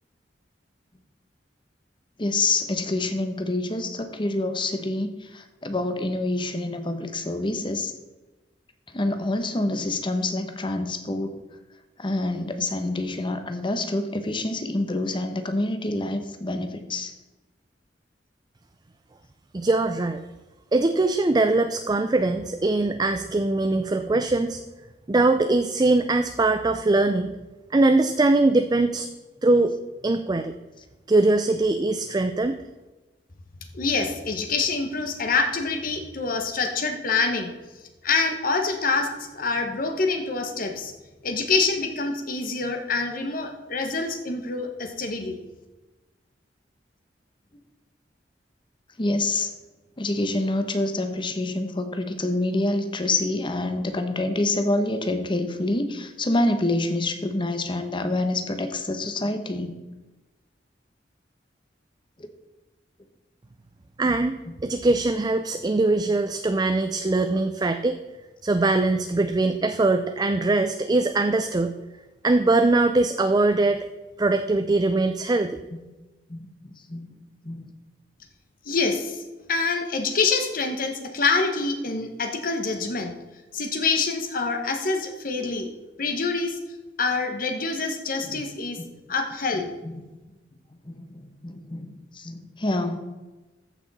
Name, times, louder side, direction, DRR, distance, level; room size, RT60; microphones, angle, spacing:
voice 1, 2.2-7.9 8.9-11.4 12.0-17.1 49.0-49.5 50.0-59.7 64.5-64.6 76.3-76.5 76.9-77.1 77.4-77.7 88.2-88.3 90.9-93.0, left 2 dB, 30° left, 8 dB, 1.0 m, -27 dB
voice 2, 19.5-20.2 20.7-24.6 25.1-27.3 27.7-29.1 29.4-29.7 30.0-30.5 31.1-32.6 64.0-64.4 64.6-68.0 68.4-71.7 72.2-73.8 74.2-75.6, right 2 dB, 25° right, 8 dB, 0.4 m, -22 dB
voice 3, 33.7-37.5 38.0-40.9 41.2-45.4 78.7-79.2 79.5-83.1 83.5-85.7 86.0-86.6 87.0-88.8 89.1-89.7, left 4 dB, 55° left, 5 dB, 1.1 m, -26 dB
14.5 x 6.1 x 4.1 m, 1.1 s
head